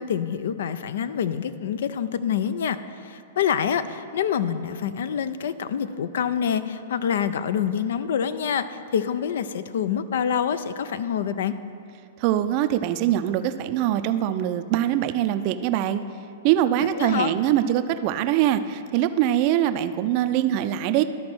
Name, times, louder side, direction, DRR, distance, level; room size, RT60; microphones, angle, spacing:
voice 1, 0.0-2.8 3.0-11.5 16.9-17.3, left 8 dB, 70° left, 13 dB, 0.4 m, -26 dB
voice 2, 12.2-16.0 16.4-21.0, right 12 dB, 45° right, 11 dB, 0.4 m, -23 dB
12.5 x 4.3 x 6.1 m, 2.5 s
hypercardioid pair, 130°, 0 cm